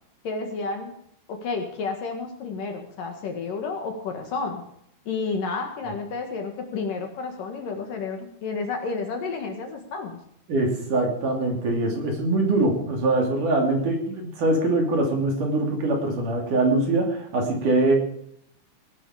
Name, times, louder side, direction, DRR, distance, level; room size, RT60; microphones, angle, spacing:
voice 1, 0.2-0.9 1.3-4.6 5.1-10.2, left 4 dB, 55° left, 4 dB, 3.1 m, -31 dB
voice 2, 10.5-17.9, right 2 dB, 50° right, 2 dB, 4.0 m, -23 dB
19.5 x 11.5 x 5.0 m, 0.71 s
omnidirectional pair, 5.0 m